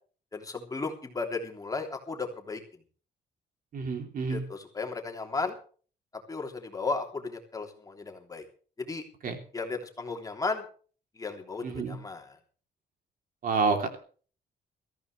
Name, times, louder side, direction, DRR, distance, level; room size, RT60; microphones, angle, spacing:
voice 1, 0.3-2.6 4.3-5.5 6.3-8.4 8.8-9.0 9.5-10.6 11.2-12.4, left 4 dB, 20° left, 3 dB, 3.2 m, -35 dB
voice 2, 3.7-4.4 9.2-9.4 11.6-12.0 13.4-14.0, right 4 dB, 55° right, 5 dB, 3.3 m, -28 dB
21.5 x 14.5 x 3.3 m, 0.41 s
cardioid pair, 125°, 17 cm